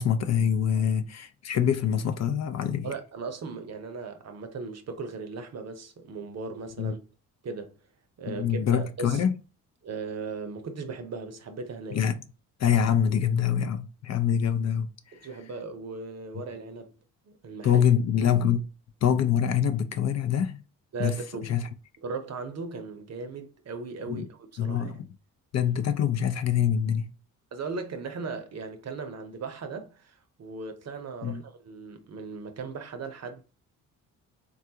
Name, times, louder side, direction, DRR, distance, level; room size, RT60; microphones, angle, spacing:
voice 1, 0.0-2.9 6.8-6.9 8.3-9.4 11.9-12.2 12.6-14.9 17.6-18.7 19.0-20.6 21.0-21.7 24.1-24.2 24.6-25.1 25.5-27.1 31.2-31.4, left 8 dB, 45° left, 0.5 m, -25 dB
voice 2, 2.8-7.0 7.4-7.8 8.2-9.2 9.8-12.0 15.1-16.9 17.3-17.8 20.9-21.6 22.0-24.9 27.5-33.4, right 4 dB, 45° right, 0.7 m, -38 dB
3.6 x 2.3 x 2.7 m
supercardioid pair, 65°, 37 cm